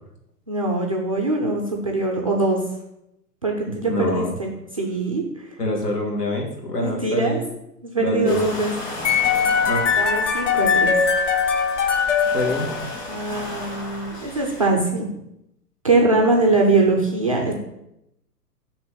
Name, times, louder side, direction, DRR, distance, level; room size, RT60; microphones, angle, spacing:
voice 1, 0.5-2.6 3.4-5.2 6.8-7.4 7.8-8.7 10.0-10.9 13.1-15.1 15.8-17.5, right 2 dB, 25° right, 0 dB, 0.3 m, -22 dB
voice 2, 3.7-4.3 5.6-7.4 8.0-8.4 9.7-9.8 12.3-12.7, left 1 dB, 75° left, 0 dB, 1.9 m, -25 dB
sound 1, 8.3-14.7, left 1 dB, 25° left, 2.0 m, -35 dB
sound 2, 9.0-13.2, left 6 dB, 50° left, 0.8 m, -21 dB
6.2 x 3.0 x 5.6 m, 0.84 s
figure-of-eight pair, 115°, 48 cm